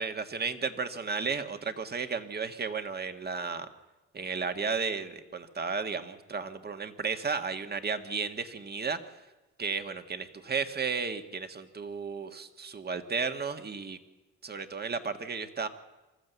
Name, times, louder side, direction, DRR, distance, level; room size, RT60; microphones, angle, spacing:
voice 1, 0.0-3.7 4.1-9.0 9.6-14.0 14.4-15.7, right 5 dB, 35° right, 8 dB, 1.7 m, -33 dB
25.5 x 13.5 x 8.2 m, 1.1 s
cardioid pair, 90°, 30 cm